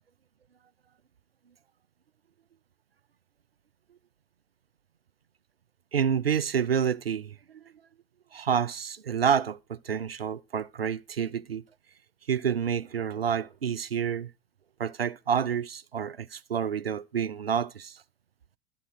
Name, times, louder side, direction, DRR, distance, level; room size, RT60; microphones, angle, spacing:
voice 1, 5.9-7.4 8.3-11.6 12.3-14.3 14.8-18.0, right 7 dB, 90° right, 0.5 m, -28 dB
12.5 x 6.0 x 6.1 m
figure-of-eight pair, 80°, 29 cm